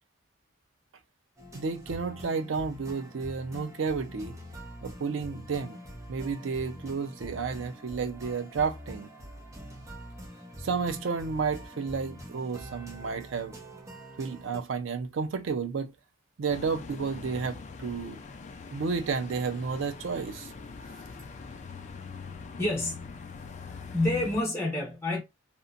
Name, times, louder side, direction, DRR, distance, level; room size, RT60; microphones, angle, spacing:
sound 1, 1.4-14.6, equal, 15° right, 0.7 m, -45 dB
voice 1, 1.5-4.3 4.8-5.8 6.1-9.1 10.6-13.6 14.2-15.9 16.4-18.2 18.7-20.5, right 5 dB, 85° right, 0.4 m, -31 dB
sound 2, 16.5-24.4, left 4 dB, 40° left, 0.4 m, -43 dB
voice 2, 22.6-23.1 23.7-25.2, left 2 dB, 15° left, 1.2 m, -28 dB
2.8 x 2.1 x 2.4 m
head